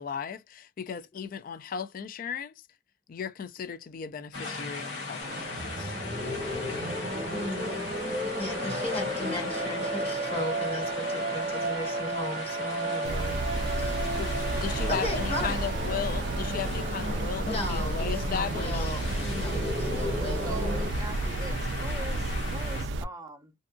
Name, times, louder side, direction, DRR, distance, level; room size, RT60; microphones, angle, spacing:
voice 1, 0.0-2.5 3.1-5.9 13.9-14.3 14.6-18.9, left 7 dB, 50° left, 0.3 m, -36 dB
sound 1, 4.3-22.9, left 3 dB, 90° left, 1.0 m, -39 dB
sound 2, 5.2-20.9, right 1 dB, 40° right, 1.0 m, -34 dB
voice 2, 7.3-7.9 8.4-13.4 13.8-14.1 14.9-15.6 17.5-20.6, left 1 dB, 35° left, 1.3 m, -36 dB
sound 3, 13.0-23.0, right 2 dB, 80° right, 0.3 m, -31 dB
voice 3, 20.4-23.5, right 1 dB, 20° right, 0.7 m, -42 dB
2.6 x 2.5 x 2.3 m
head